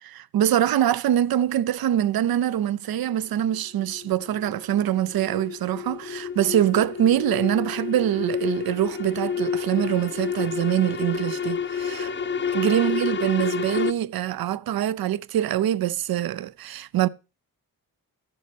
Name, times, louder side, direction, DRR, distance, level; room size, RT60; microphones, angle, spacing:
voice 1, 0.0-12.1 12.5-17.1, right 11 dB, 70° right, 0.5 m, -24 dB
sound 1, 3.4-13.9, left 5 dB, 30° left, 0.5 m, -30 dB
13.5 x 7.0 x 3.3 m
cardioid pair, 50°, 37 cm